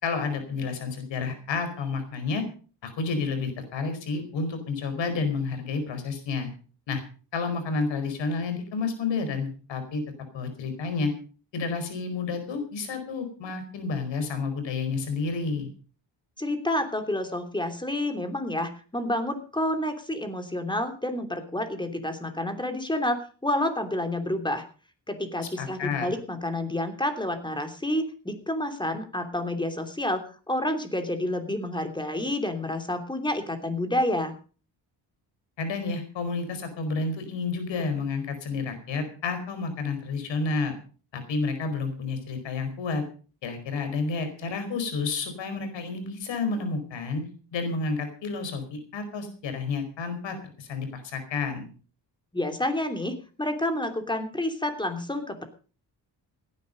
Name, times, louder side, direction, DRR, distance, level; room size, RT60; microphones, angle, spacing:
voice 1, 0.0-2.4 2.8-6.5 6.9-7.0 7.3-10.0 10.3-11.1 11.5-15.7 25.6-26.1 35.6-40.7 41.1-43.0 43.4-47.2 47.5-51.7, left 4 dB, 80° left, 8 dB, 4.7 m, -30 dB
voice 2, 16.4-24.6 25.1-34.3 52.3-55.4, left 1 dB, 10° left, 6 dB, 3.0 m, -29 dB
17.0 x 10.5 x 5.3 m, 0.40 s
cardioid pair, 100°, 44 cm